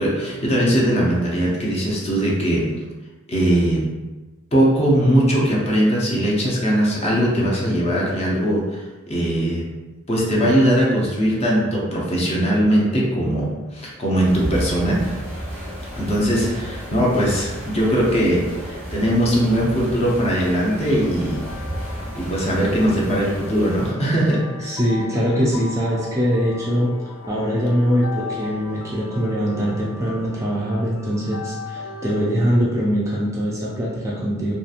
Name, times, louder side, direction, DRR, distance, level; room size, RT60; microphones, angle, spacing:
voice 1, 0.0-2.7 3.3-3.8 4.5-9.6 10.1-15.0 16.0-21.4 22.1-24.7, equal, 30° left, -4 dB, 0.6 m, -20 dB
sound 1, 14.2-23.9, equal, 15° left, 1.1 m, -32 dB
sound 2, 20.0-32.4, left 5 dB, 80° left, 0.5 m, -38 dB
voice 2, 24.6-26.9 27.3-34.5, equal, 15° right, -5 dB, 0.3 m, -22 dB
2.8 x 2.4 x 2.4 m, 1.2 s
head